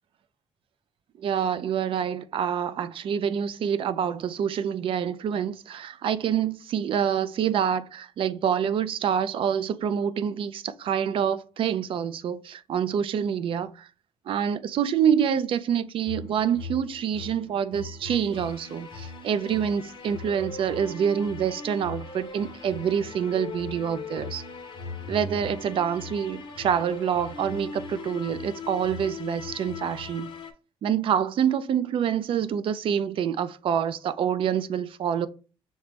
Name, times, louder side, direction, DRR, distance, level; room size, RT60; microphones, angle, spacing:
voice 1, 1.2-13.9 14.3-24.4 25.1-30.3 30.8-35.3, right 8 dB, 60° right, 0.3 m, -26 dB
sound 1, 16.1-30.5, left 4 dB, 55° left, 0.8 m, -39 dB
5.8 x 2.1 x 3.3 m
cardioid pair, 120°, 10 cm